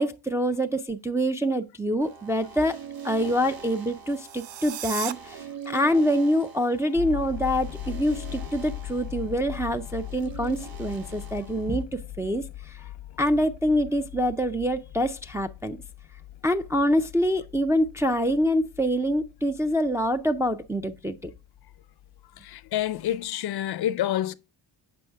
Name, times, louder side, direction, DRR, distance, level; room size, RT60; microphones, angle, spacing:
voice 1, 0.0-2.8 3.0-5.4 5.7-12.8 13.2-15.8 16.4-21.2, equal, 5° right, 0.3 m, -25 dB
sound 1, 2.0-11.8, right 6 dB, 50° right, 1.3 m, -43 dB
sound 2, 4.0-5.1, right 12 dB, 70° right, 0.6 m, -35 dB
sound 3, 6.9-23.3, left 13 dB, 90° left, 0.8 m, -41 dB
voice 2, 22.4-24.3, left 12 dB, 55° left, 0.5 m, -28 dB
7.7 x 5.4 x 3.4 m
cardioid pair, 100°, 46 cm